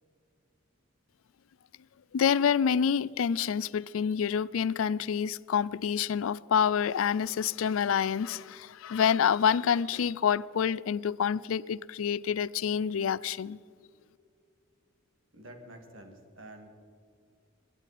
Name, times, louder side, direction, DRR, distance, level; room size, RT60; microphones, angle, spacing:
voice 1, 2.1-13.6, left 7 dB, 80° left, 0.4 m, -27 dB
voice 2, 15.3-16.7, right 1 dB, 70° right, 2.1 m, -48 dB
22.5 x 11.0 x 4.2 m
head